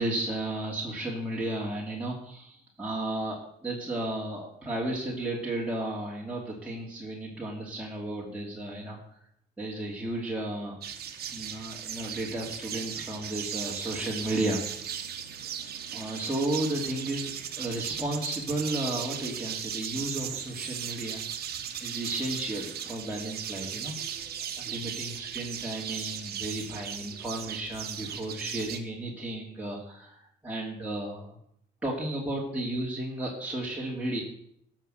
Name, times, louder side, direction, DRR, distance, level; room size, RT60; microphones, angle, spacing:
voice 1, 0.0-9.2 9.6-10.8 11.3-15.1 15.9-17.3 17.6-21.5 21.8-23.9 24.6-31.4 31.8-34.2, right 1 dB, 10° right, -4 dB, 2.8 m, -33 dB
sound 1, 10.8-28.8, right 9 dB, 65° right, 1.4 m, -37 dB
13.0 x 6.0 x 8.0 m, 0.71 s
cardioid pair, 90°, 17 cm